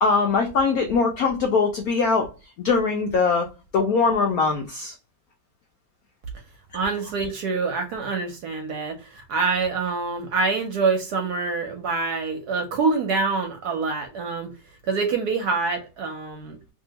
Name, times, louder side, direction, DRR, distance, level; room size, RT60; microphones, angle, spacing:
voice 1, 0.0-2.3 2.6-3.5 3.7-4.9, left 4 dB, 90° left, 0.8 m, -21 dB
voice 2, 6.7-14.5 14.8-16.7, right 4 dB, 70° right, 1.0 m, -26 dB
2.8 x 2.6 x 2.8 m
omnidirectional pair, 2.2 m